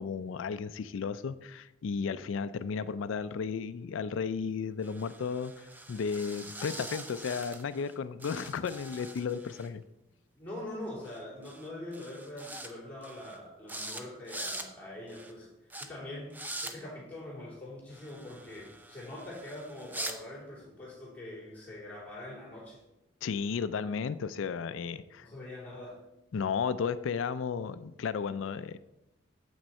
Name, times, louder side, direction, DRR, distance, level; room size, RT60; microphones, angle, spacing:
voice 1, 0.0-5.5 5.9-9.8 23.2-25.3 26.3-28.8, left 6 dB, 80° left, 14 dB, 0.4 m, -34 dB
sound 1, 4.8-7.9 8.2-9.7 11.0-11.2 11.4-11.7 11.9-12.7 13.0-13.4 13.7-14.0 14.3-14.7 15.1-15.3 15.7-15.9 16.3-16.7 17.9-20.2, right 1 dB, 10° right, 0.5 m, -43 dB
voice 2, 10.3-15.5 15.8-16.4 16.6-22.8 25.2-26.0, left 1 dB, 10° left, -8 dB, 3.1 m, -43 dB
8.1 x 6.2 x 4.3 m, 0.96 s
head